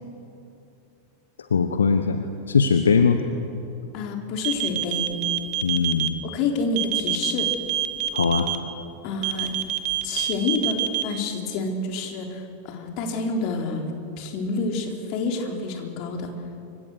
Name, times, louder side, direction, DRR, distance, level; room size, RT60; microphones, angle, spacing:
voice 1, 1.5-3.2 5.6-6.2 8.1-8.5, left 5 dB, 70° left, 8 dB, 1.2 m, -20 dB
voice 2, 3.9-5.1 6.2-7.5 9.0-9.5 10.0-10.8 11.0-13.8 14.2-16.3, left 4 dB, 45° left, 2 dB, 4.1 m, -28 dB
sound 1, 4.4-6.1 6.8-8.6 9.2-11.0, right 13 dB, 40° right, 1.7 m, -25 dB
28.5 x 25.0 x 6.6 m, 2.8 s
figure-of-eight pair, 90°, 0 cm